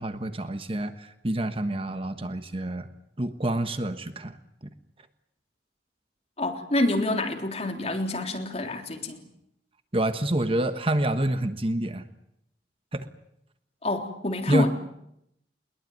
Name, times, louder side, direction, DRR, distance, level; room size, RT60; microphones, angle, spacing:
voice 1, 0.0-2.9 3.2-4.4 9.9-12.1 12.9-13.1 14.5-14.7, right 1 dB, 30° right, 9 dB, 1.3 m, -27 dB
voice 2, 6.4-9.2 13.8-14.7, left 1 dB, 35° left, 4 dB, 3.6 m, -27 dB
22.0 x 21.5 x 9.4 m, 0.78 s
head